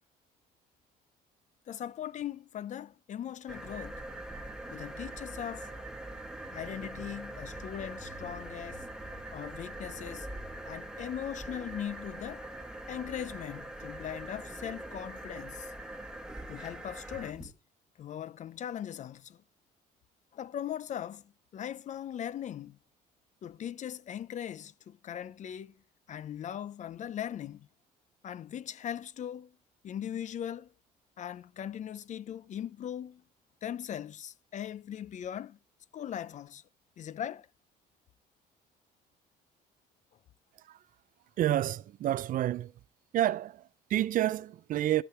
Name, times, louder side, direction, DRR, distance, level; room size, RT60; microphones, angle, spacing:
voice 1, 1.7-4.0 4.7-5.7 6.5-8.8 9.3-10.3 10.6-12.5 12.9-15.7 16.5-17.5 18.0-19.4 20.3-21.2 21.5-22.8 23.4-25.7 26.1-27.7 28.2-29.6 29.8-30.7 31.2-33.2 33.6-35.6 35.9-36.6 37.0-37.5, left 10 dB, 45° left, 0.6 m, -39 dB
sound 1, 3.5-17.5, right 1 dB, 5° right, 1.4 m, -43 dB
voice 2, 41.4-42.7 43.1-45.0, right 13 dB, 55° right, 0.4 m, -29 dB
14.0 x 5.0 x 4.4 m
cardioid pair, 110°, 17 cm